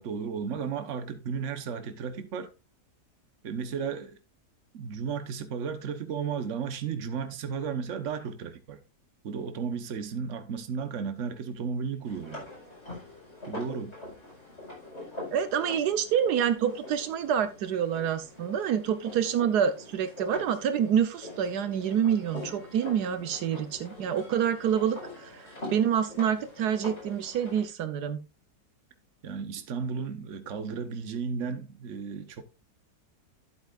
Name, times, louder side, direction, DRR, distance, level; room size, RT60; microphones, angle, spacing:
voice 1, 0.0-2.5 3.4-4.2 4.7-8.8 9.2-12.5 13.5-14.0 29.2-32.4, right 6 dB, 55° right, 1.3 m, -34 dB
sound 1, 12.0-27.6, left 2 dB, 40° left, 5.2 m, -44 dB
voice 2, 15.3-25.4 25.7-28.2, right 8 dB, 80° right, 1.3 m, -27 dB
11.5 x 8.1 x 2.4 m
omnidirectional pair, 1.7 m